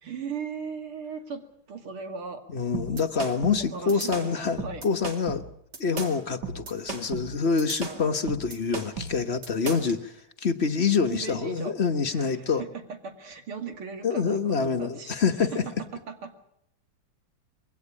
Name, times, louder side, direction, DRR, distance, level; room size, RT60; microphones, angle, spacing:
voice 1, 0.0-1.4 1.7-2.4 3.7-4.8 11.0-11.7 12.1-15.2 15.5-16.4, right 5 dB, 90° right, 5 dB, 3.3 m, -38 dB
voice 2, 2.5-5.4 5.8-10.1 10.4-12.6 14.0-15.6, left 5 dB, 40° left, 7 dB, 1.1 m, -26 dB
sound 1, 2.7-10.0, right 4 dB, 55° right, 3.0 m, -35 dB
23.0 x 17.5 x 8.6 m, 0.74 s
omnidirectional pair, 2.3 m